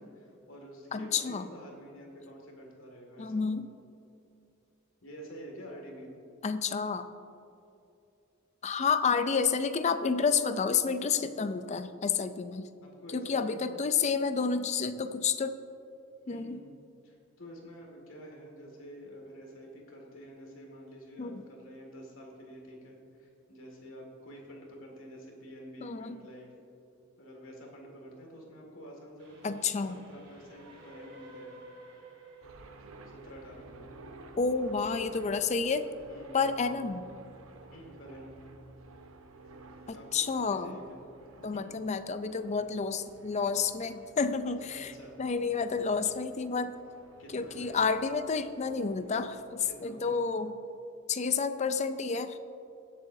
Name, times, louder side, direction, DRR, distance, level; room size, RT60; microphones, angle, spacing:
voice 1, 0.0-3.4 5.0-6.1 12.8-13.8 14.1-14.2 16.3-16.7 17.0-26.5 27.2-29.6 29.9-31.6 33.0-33.7 36.1-36.4 37.7-38.4 39.9-41.0 41.5-41.6 44.7-45.2 47.2-48.0 49.6-50.2, equal, 75° left, 0 dB, 2.1 m, -48 dB
voice 2, 0.9-1.5 3.2-3.7 6.4-7.1 8.6-12.7 13.1-15.6 16.3-16.6 21.2-21.4 25.8-26.2 29.4-30.0 34.4-35.9 36.3-37.0 39.9-40.8 41.4-44.9 45.2-46.8 47.3-50.5 51.1-52.4, left 5 dB, 35° left, 10 dB, 0.4 m, -30 dB
Train, 29.2-34.5, right 1 dB, 60° right, 2.3 m, -53 dB
sound 1, 32.4-49.9, right 2 dB, 85° right, 0.7 m, -53 dB
18.0 x 7.7 x 2.7 m, 2.7 s
head